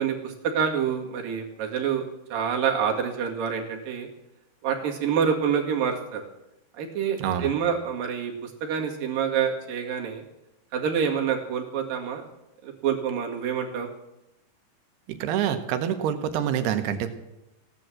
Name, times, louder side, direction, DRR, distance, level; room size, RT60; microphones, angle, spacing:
voice 1, 0.0-2.0 2.3-4.1 4.6-6.3 6.8-10.2 10.7-12.2 12.6-13.9, right 7 dB, 60° right, 1 dB, 3.6 m, -27 dB
voice 2, 7.2-7.5 15.1-17.1, right 9 dB, 80° right, 9 dB, 3.0 m, -26 dB
16.5 x 11.0 x 7.5 m, 0.90 s
omnidirectional pair, 4.7 m